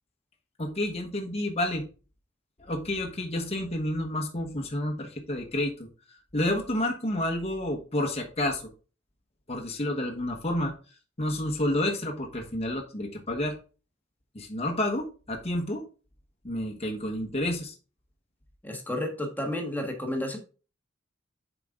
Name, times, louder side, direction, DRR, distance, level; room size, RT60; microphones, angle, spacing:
voice 1, 0.6-1.8 2.6-5.9 6.3-8.6 9.5-10.7 11.2-13.5 14.3-15.8 16.4-17.7, left 1 dB, 30° left, 1 dB, 1.2 m, -30 dB
voice 2, 18.6-20.4, left 1 dB, 10° left, 3 dB, 1.4 m, -31 dB
7.5 x 5.1 x 3.7 m, 0.35 s
head